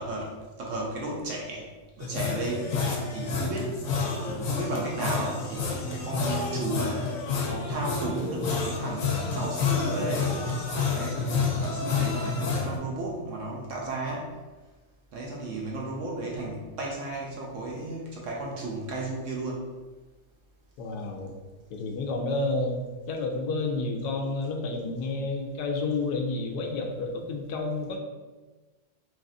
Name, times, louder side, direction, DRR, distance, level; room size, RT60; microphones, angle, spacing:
voice 1, 0.0-1.7 2.0-2.7 3.1-3.8 4.4-7.2 7.5-10.4 10.9-14.3 15.1-19.7, right 2 dB, 65° right, -2 dB, 0.9 m, -34 dB
sound 1, 2.0-12.8, left 4 dB, 65° left, 0.9 m, -29 dB
voice 2, 20.8-21.3 21.7-28.0, left 3 dB, 90° left, 3 dB, 1.1 m, -30 dB
4.0 x 3.0 x 2.6 m, 1.3 s
omnidirectional pair, 1.7 m